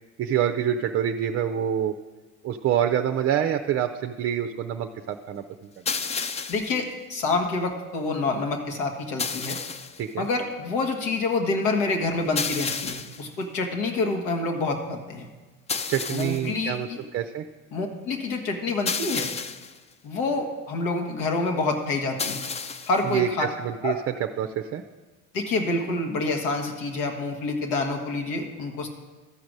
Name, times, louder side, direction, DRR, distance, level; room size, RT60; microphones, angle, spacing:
voice 1, 0.2-1.9 2.4-5.4 10.0-10.3 15.9-16.9 17.1-17.4 23.1-24.8, right 9 dB, 35° right, 7 dB, 0.5 m, -26 dB
sound 1, 5.9-6.8 9.2-10.0 12.4-13.3 15.7-16.5 18.9-19.8 22.2-23.0, left 5 dB, 15° left, 0.3 m, -31 dB
voice 2, 6.5-9.6 10.2-15.3 16.1-17.0 17.7-19.3 20.0-22.5 22.9-23.5 23.8-24.0 25.3-28.9, left 3 dB, 75° left, 4 dB, 1.6 m, -27 dB
13.0 x 5.1 x 6.2 m, 1.3 s
hypercardioid pair, 80°, 40 cm